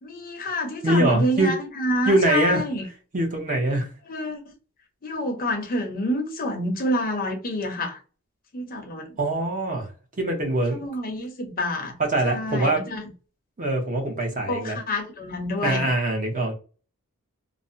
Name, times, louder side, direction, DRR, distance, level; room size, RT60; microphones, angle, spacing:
voice 1, 0.0-2.9 4.1-4.4 5.0-8.0 8.5-9.1 10.7-11.9 12.2-13.0 14.5-15.9, left 1 dB, 40° left, 0.6 m, -28 dB
voice 2, 0.8-1.5 2.1-2.6 3.1-3.9 9.2-9.9 10.2-10.8 12.0-12.9 13.6-14.8 15.6-16.5, right 1 dB, 35° right, 0.8 m, -23 dB
2.5 x 2.1 x 2.6 m
head